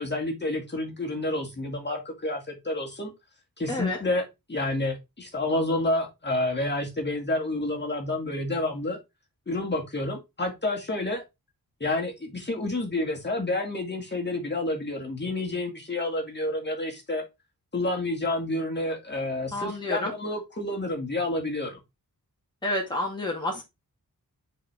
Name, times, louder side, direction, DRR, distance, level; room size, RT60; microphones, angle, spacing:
voice 1, 0.0-3.1 3.6-4.2 4.5-9.0 9.5-11.2 11.8-17.2 17.7-21.8, left 2 dB, 30° left, 0 dB, 2.2 m, -29 dB
voice 2, 3.7-4.0 19.5-20.1 22.6-23.6, left 1 dB, 10° left, -1 dB, 2.0 m, -29 dB
6.6 x 4.9 x 3.5 m, 0.22 s
wide cardioid pair, 80°, 37 cm